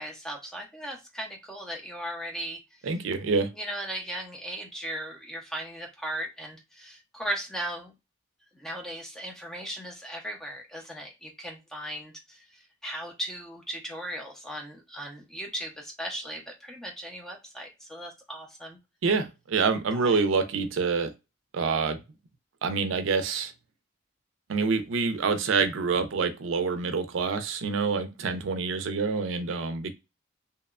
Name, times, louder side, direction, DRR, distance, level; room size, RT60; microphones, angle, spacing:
voice 1, 0.0-2.6 3.5-7.9 8.5-18.8 19.9-20.2, right 1 dB, 5° left, 0.4 m, -37 dB
voice 2, 2.8-3.5 19.0-21.1 21.5-22.0 22.6-23.5 24.5-29.9, right 4 dB, 80° right, 0.4 m, -26 dB
2.8 x 2.1 x 2.3 m
head